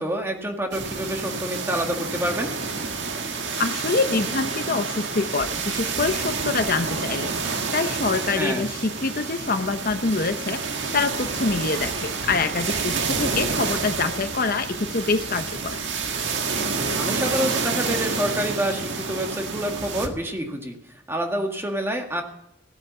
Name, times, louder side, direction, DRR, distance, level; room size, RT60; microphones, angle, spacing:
voice 1, 0.0-2.6 8.4-8.7 17.0-22.2, equal, 15° right, 3 dB, 1.8 m, -27 dB
sound 1, 0.7-20.1, right 4 dB, 90° right, 1.7 m, -28 dB
voice 2, 3.6-15.8, left 3 dB, 50° left, 9 dB, 0.8 m, -25 dB
16.0 x 8.5 x 6.8 m, 0.83 s
head